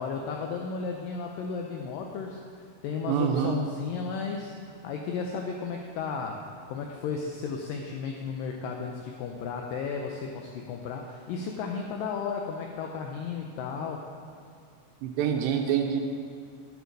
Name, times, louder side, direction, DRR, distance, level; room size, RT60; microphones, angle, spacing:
voice 1, 0.0-4.5 4.8-6.4 6.7-14.0, left 5 dB, 85° left, 2 dB, 2.0 m, -34 dB
voice 2, 3.1-3.6 15.0-16.0, right 8 dB, 80° right, 2 dB, 2.2 m, -26 dB
9.1 x 6.8 x 5.3 m, 2.2 s
omnidirectional pair, 4.5 m